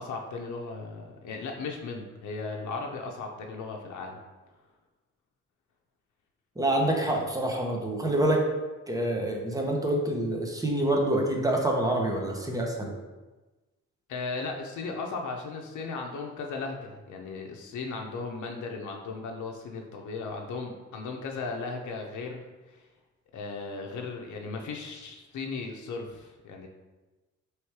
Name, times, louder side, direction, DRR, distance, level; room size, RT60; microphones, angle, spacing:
voice 1, 0.0-4.2 12.5-12.6 14.1-22.4 22.7-22.8 23.3-26.7, left 4 dB, 75° left, 1 dB, 0.6 m, -36 dB
voice 2, 6.6-8.5 8.9-12.9, right 1 dB, 10° right, 0 dB, 0.7 m, -26 dB
3.1 x 3.1 x 4.6 m, 1.2 s
cardioid pair, 120°, 30 cm